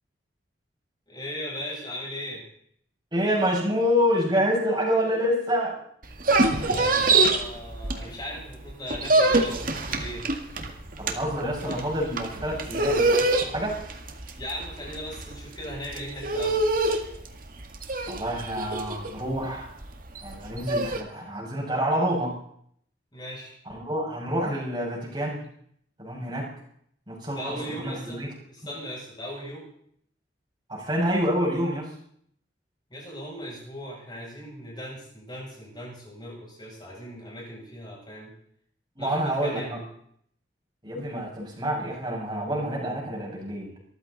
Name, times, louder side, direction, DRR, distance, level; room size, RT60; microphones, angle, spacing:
voice 1, 1.1-2.4 6.5-10.3 11.6-11.9 14.4-16.7 23.1-23.5 27.3-28.2 28.5-29.7 32.9-38.3 39.0-39.9, equal, 25° left, -3 dB, 7.7 m, -38 dB
voice 2, 3.1-5.8 11.0-13.8 18.1-19.7 20.2-22.4 23.7-25.4 26.0-26.5 27.1-28.3 30.7-31.9 39.0-39.8 40.8-43.7, equal, 25° right, -3 dB, 6.4 m, -27 dB
sound 1, 6.0-8.4 8.7-21.0, right 2 dB, 45° right, 2.0 m, -25 dB
24.0 x 14.5 x 4.1 m, 0.66 s
head